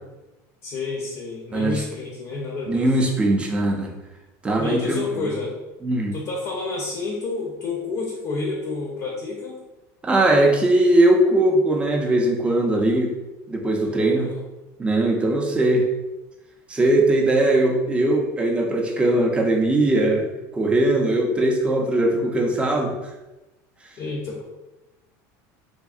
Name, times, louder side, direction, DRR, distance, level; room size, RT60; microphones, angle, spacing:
voice 1, 0.6-2.9 4.6-5.6 6.1-9.6 13.8-14.4 24.0-24.5, left 3 dB, 40° left, -2 dB, 0.5 m, -29 dB
voice 2, 1.5-1.8 2.7-3.9 4.4-5.3 5.8-6.1 10.0-13.1 13.5-14.3 14.8-15.9 16.7-20.3 20.5-22.9, right 1 dB, 15° right, 1 dB, 0.4 m, -20 dB
3.4 x 2.0 x 2.3 m, 1.0 s
supercardioid pair, 140°, 9 cm